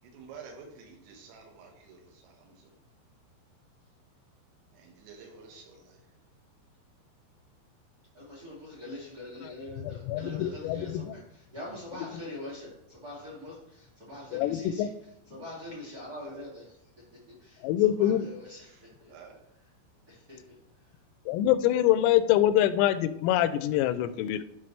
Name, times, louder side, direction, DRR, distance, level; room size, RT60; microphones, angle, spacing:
voice 1, 0.0-2.7 4.7-6.0 12.0-12.1 16.1-16.4 18.6-18.8 19.1-19.4, right 5 dB, 85° right, 2 dB, 4.1 m, -50 dB
voice 2, 8.1-14.9 15.3-16.9 17.3-19.1 20.1-21.0, left 1 dB, 40° right, -5 dB, 1.4 m, -44 dB
voice 3, 9.8-11.1 14.3-14.9 17.6-18.3 21.3-24.4, left 12 dB, 90° left, 13 dB, 3.2 m, -25 dB
12.0 x 5.6 x 3.2 m, 0.81 s
omnidirectional pair, 5.8 m